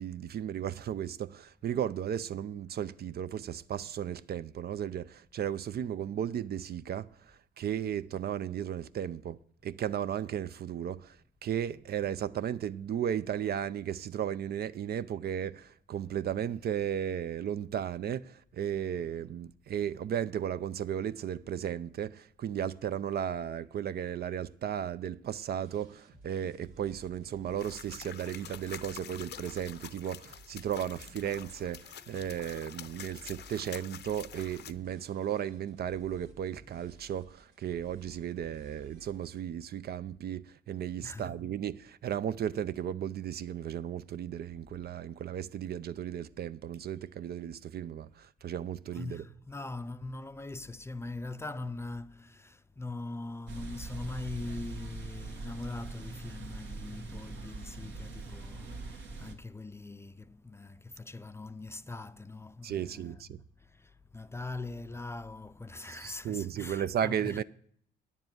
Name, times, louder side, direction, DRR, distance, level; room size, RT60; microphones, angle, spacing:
voice 1, 0.0-49.3 62.6-63.4 65.8-67.4, right 9 dB, 55° right, 0.4 m, -35 dB
sound 1, 25.6-39.4, right 2 dB, 85° right, 2.1 m, -57 dB
sound 2, 27.6-34.7, left 10 dB, 60° left, 0.6 m, -47 dB
voice 2, 41.0-41.3 48.9-67.4, left 2 dB, 15° left, 0.5 m, -42 dB
sound 3, 53.5-59.3, right 3 dB, 70° right, 1.8 m, -42 dB
9.8 x 7.3 x 9.2 m
cardioid pair, 90°, 20 cm